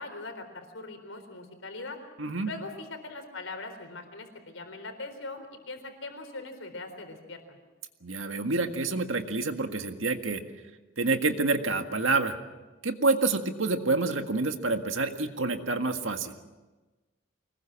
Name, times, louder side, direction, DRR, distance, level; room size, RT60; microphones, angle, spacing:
voice 1, 0.0-2.0 2.4-7.6, left 3 dB, 80° left, 6 dB, 4.1 m, -41 dB
voice 2, 2.2-2.5 8.0-10.4 11.0-12.4 12.8-16.4, right 3 dB, 80° right, 6 dB, 1.8 m, -28 dB
24.5 x 20.5 x 7.5 m, 1.2 s
head